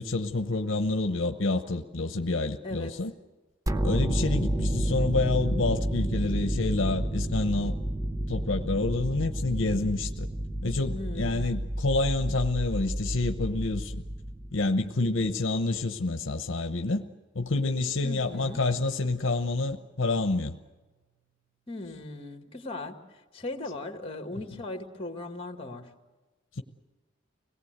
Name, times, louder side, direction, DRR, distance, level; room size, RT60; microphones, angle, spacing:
voice 1, 0.0-3.1 3.8-7.8 8.3-10.3 10.6-14.0 14.5-17.0 17.3-20.5 26.6-26.7, left 3 dB, 70° left, 8 dB, 1.0 m, -28 dB
sound 1, 3.7-14.6, right 1 dB, 15° right, 0.7 m, -30 dB
voice 2, 10.9-11.5 18.0-18.6 21.7-25.9, left 2 dB, 30° left, 6 dB, 2.1 m, -38 dB
Keyboard (musical), 18.3-21.3, right 7 dB, 50° left, 1.4 m, -57 dB
25.0 x 18.5 x 8.1 m, 1.2 s
head